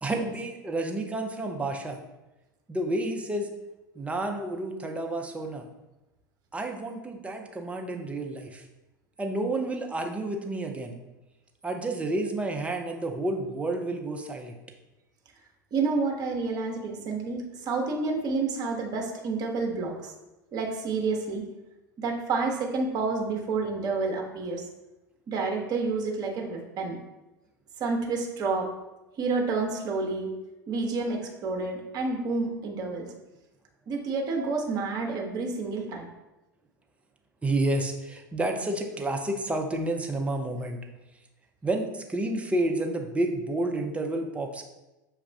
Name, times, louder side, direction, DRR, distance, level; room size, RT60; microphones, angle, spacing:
voice 1, 0.0-2.0 2.7-3.5 4.0-5.7 6.5-8.6 9.2-11.0 11.6-14.6 37.4-40.8 41.6-44.6, right 2 dB, 10° right, 3 dB, 0.6 m, -30 dB
voice 2, 15.7-20.1 20.5-21.5 22.0-24.6 25.3-27.0 27.8-28.7 29.2-30.3 30.7-33.1 33.9-36.1, right 4 dB, 40° right, 1 dB, 0.9 m, -29 dB
6.3 x 2.4 x 3.3 m, 1.0 s
figure-of-eight pair, 80°, 11 cm